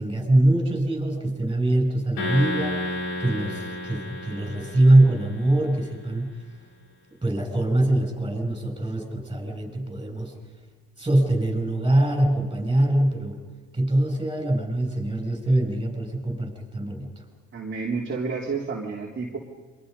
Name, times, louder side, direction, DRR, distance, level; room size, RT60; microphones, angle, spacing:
voice 1, 0.0-6.3 7.2-10.3 11.0-13.4 13.7-17.1, right 1 dB, 15° right, 2 dB, 7.6 m, -23 dB
sound 1, 2.2-5.6, left 1 dB, 85° left, 7.2 m, -32 dB
voice 2, 17.5-19.4, right 4 dB, 30° right, -2 dB, 3.4 m, -30 dB
27.5 x 24.0 x 5.5 m, 1.4 s
supercardioid pair, 75°, 36 cm